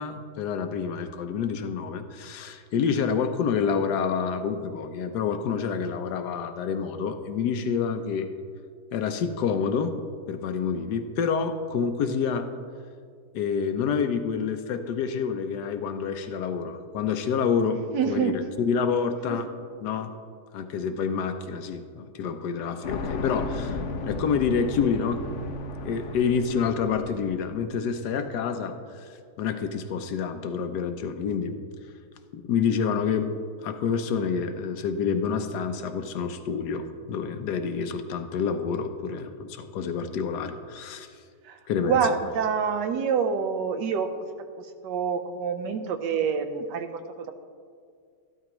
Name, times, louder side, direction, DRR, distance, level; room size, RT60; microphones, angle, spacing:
voice 1, 0.0-8.3 8.9-9.9 10.3-12.5 13.3-19.5 19.8-20.1 20.5-23.8 24.0-25.2 25.8-29.1 29.4-31.5 32.3-33.3 33.6-41.1 41.7-42.0, left 6 dB, 75° left, 8 dB, 1.2 m, -28 dB
voice 2, 17.9-18.4 19.3-19.5 41.4-41.6 41.8-44.1 44.6-47.3, right 6 dB, 80° right, 8 dB, 1.3 m, -27 dB
sound 1, 22.8-27.8, left 2 dB, 55° left, 0.9 m, -35 dB
12.5 x 12.0 x 3.0 m, 2.2 s
omnidirectional pair, 1.9 m